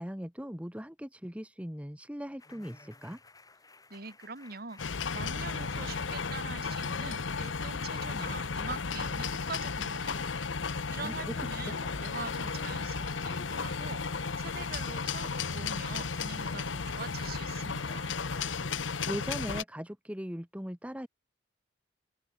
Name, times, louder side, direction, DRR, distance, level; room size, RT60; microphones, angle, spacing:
voice 1, 0.0-3.2 10.9-11.3 11.6-11.7 18.9-21.1, equal, 5° right, 1.9 m, -39 dB
sound 1, 2.4-19.3, left 2 dB, 20° left, 5.1 m, -56 dB
voice 2, 3.9-4.8 5.1-10.3 10.9-18.1, right 4 dB, 50° right, 2.2 m, -44 dB
sound 2, 4.8-19.6, left 5 dB, 85° left, 1.0 m, -34 dB
open air
head